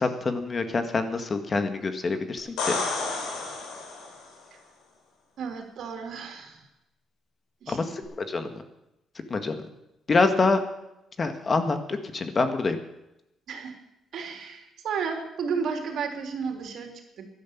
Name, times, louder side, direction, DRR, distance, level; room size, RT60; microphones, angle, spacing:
voice 1, 0.0-2.8 7.7-8.6 9.3-9.6 10.1-10.6 11.2-12.8, left 3 dB, 35° left, 8 dB, 1.9 m, -26 dB
sound 1, 2.4-4.3 8.0-8.1, left 3 dB, 90° left, 4.8 m, -31 dB
voice 2, 5.4-6.6 7.6-8.0 13.5-13.7 14.1-17.3, right 5 dB, 70° right, 4 dB, 3.2 m, -33 dB
13.0 x 11.5 x 8.6 m, 0.88 s
cardioid pair, 90°, 0 cm